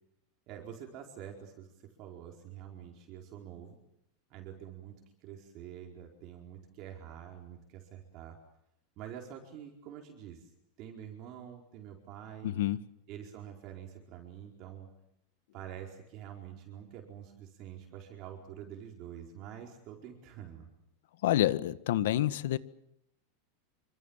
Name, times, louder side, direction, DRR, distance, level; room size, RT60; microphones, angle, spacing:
voice 1, 0.5-1.7 2.0-3.8 4.3-4.9 5.2-8.4 9.0-10.5 10.8-12.5 13.1-14.9 15.5-20.7, right 9 dB, 35° right, 2 dB, 4.6 m, -47 dB
voice 2, 12.4-12.8 21.2-22.6, left 13 dB, 70° left, 14 dB, 1.6 m, -28 dB
28.0 x 25.5 x 7.4 m, 0.79 s
supercardioid pair, 165°, 0 cm